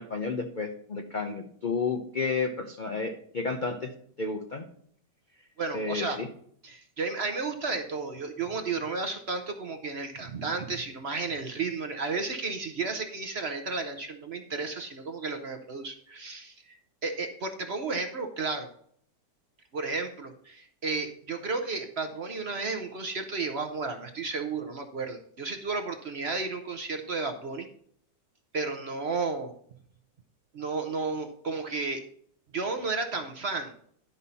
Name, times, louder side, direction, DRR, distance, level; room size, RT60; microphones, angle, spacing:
voice 1, 0.0-3.9 4.2-4.6 5.7-6.3, left 4 dB, 55° left, 5 dB, 0.5 m, -31 dB
voice 2, 5.6-6.2 6.6-16.8 17.0-18.7 19.7-27.7 28.5-29.5 30.5-32.0 32.5-33.7, right 4 dB, 50° right, 6 dB, 0.9 m, -33 dB
11.0 x 5.5 x 4.2 m, 0.64 s
omnidirectional pair, 1.8 m